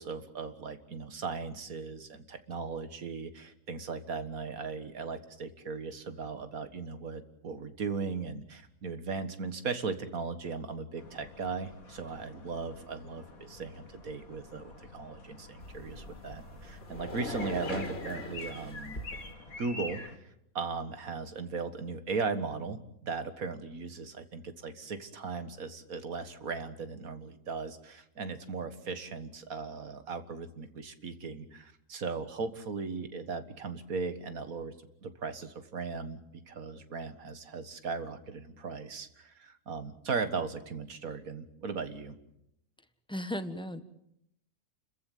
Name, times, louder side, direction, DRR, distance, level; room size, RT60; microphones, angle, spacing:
voice 1, 0.0-19.0 19.6-20.1 20.5-34.7 35.0-36.2 36.5-42.1, right 4 dB, 65° right, 10 dB, 2.1 m, -37 dB
sound 1, 11.0-20.2, left 3 dB, 60° left, 2.6 m, -47 dB
sound 2, 15.6-19.3, left 1 dB, 40° left, 3.1 m, -41 dB
voice 2, 43.1-43.8, equal, 5° left, 10 dB, 1.2 m, -35 dB
30.0 x 14.5 x 9.3 m, 0.78 s
omnidirectional pair, 1.6 m